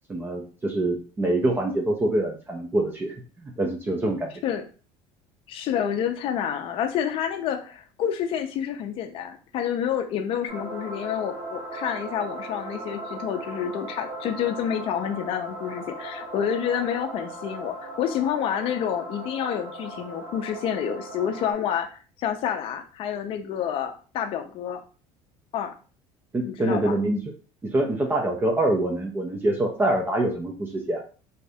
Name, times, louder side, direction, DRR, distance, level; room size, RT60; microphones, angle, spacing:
voice 1, 0.1-4.3 26.3-27.2 27.6-31.0, right 1 dB, 15° right, 1 dB, 0.5 m, -25 dB
voice 2, 5.5-24.8 25.5-25.7 26.4-27.0, left 9 dB, 50° left, 5 dB, 0.5 m, -28 dB
sound 1, 10.5-21.5, right 1 dB, 40° right, 1.2 m, -38 dB
2.7 x 2.5 x 3.3 m, 0.37 s
cardioid pair, 135°, 12 cm